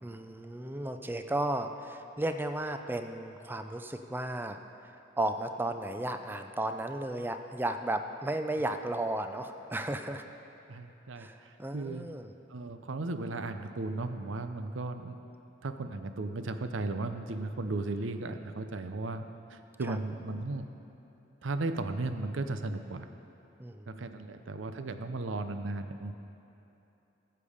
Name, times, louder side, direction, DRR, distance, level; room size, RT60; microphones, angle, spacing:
voice 1, 0.0-10.2 11.2-12.3 19.9-20.0 23.6-23.9, right 1 dB, 10° right, 7 dB, 0.4 m, -34 dB
voice 2, 10.7-12.1 12.5-15.2 15.6-19.2 19.5-20.7 21.4-23.1 23.9-26.1, right 2 dB, 85° right, 8 dB, 0.6 m, -35 dB
15.0 x 6.8 x 5.0 m, 3.0 s
head